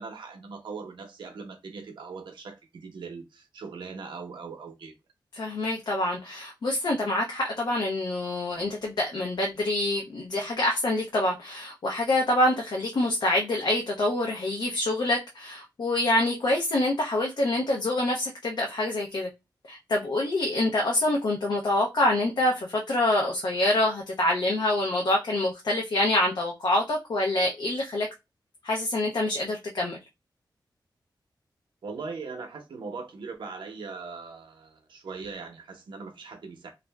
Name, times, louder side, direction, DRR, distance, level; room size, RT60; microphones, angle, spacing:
voice 1, 0.0-4.9 31.8-36.7, right 4 dB, 90° right, 0.6 m, -40 dB
voice 2, 5.3-19.3 19.7-28.1 28.6-30.0, left 1 dB, 60° left, 0.6 m, -26 dB
2.4 x 2.0 x 3.3 m
wide cardioid pair, 115°, 8 cm